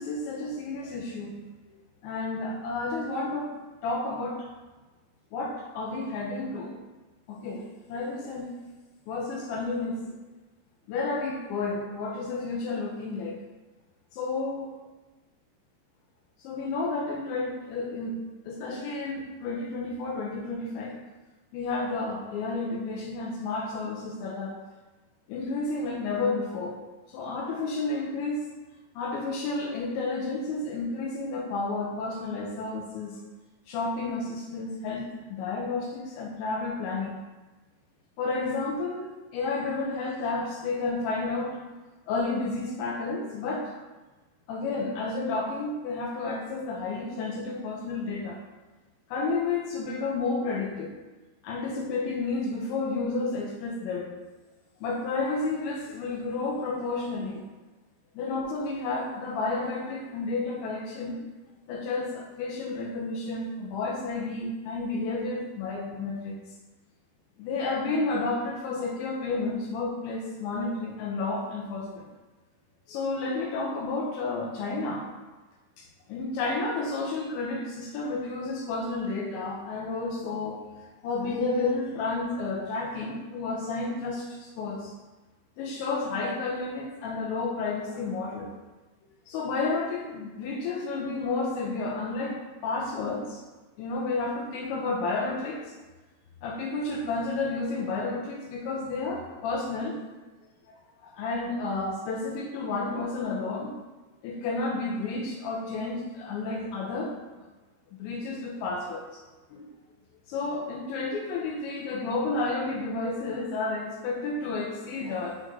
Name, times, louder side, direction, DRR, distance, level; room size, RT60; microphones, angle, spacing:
voice 1, 0.0-1.3 2.0-3.5 3.8-4.4 5.3-6.7 7.3-7.6 7.9-8.5 9.1-10.0 10.9-13.4 14.1-14.7 16.4-18.2 18.4-20.9 21.5-24.5 25.3-26.8 27.1-28.4 29.0-33.2 33.7-37.1 38.2-41.6 42.1-43.7 44.5-48.4 49.1-50.9 51.4-54.1 54.8-57.4 58.1-61.2 61.7-66.4 67.4-72.1 72.9-75.1 75.8-80.6 81.0-84.9 85.6-88.5 89.3-93.4 93.8-95.7 96.4-100.0 101.0-103.7 104.2-107.1 107.9-109.2 109.5-109.7 110.3-115.4, left 3 dB, 80° left, -1 dB, 2.9 m, -31 dB
6.4 x 5.9 x 2.6 m, 1.2 s
omnidirectional pair, 5.5 m